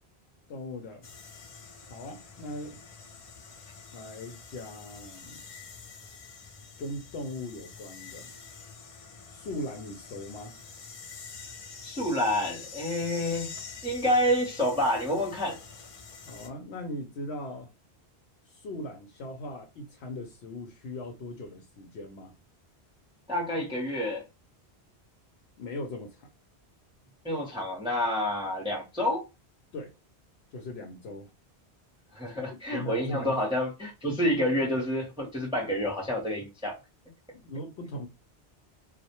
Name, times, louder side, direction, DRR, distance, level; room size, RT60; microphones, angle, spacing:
voice 1, 0.5-1.1 1.9-2.8 3.9-5.4 6.8-8.3 9.3-10.6 16.2-17.7 18.4-22.4 25.6-26.3 29.7-29.9 30.5-31.3 32.5-33.3 37.3-38.1, left 1 dB, 80° left, 0.8 m, -39 dB
sound 1, 1.0-16.5, left 5 dB, 60° left, 0.3 m, -46 dB
voice 2, 11.8-13.6 13.8-15.6 23.3-24.2 27.2-29.2 32.1-36.8, left 1 dB, 5° right, 0.6 m, -28 dB
2.1 x 2.1 x 2.8 m
omnidirectional pair, 1.1 m